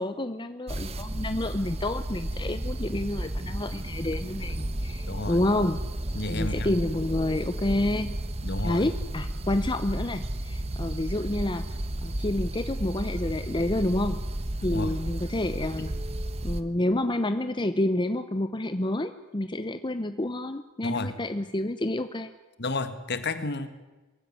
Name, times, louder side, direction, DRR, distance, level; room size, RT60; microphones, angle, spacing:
voice 1, 0.0-5.8 6.3-8.1 8.6-11.7 12.0-14.2 14.6-15.9 16.4-22.3, left 1 dB, 20° left, 10 dB, 0.8 m, -29 dB
sound 1, 0.7-16.6, right 1 dB, 30° right, 1.1 m, -33 dB
voice 2, 5.1-5.4 6.1-6.8 8.4-8.9 14.7-15.0 20.8-21.2 22.6-23.7, left 2 dB, 55° left, 11 dB, 1.8 m, -31 dB
23.0 x 16.0 x 9.4 m, 1.2 s
head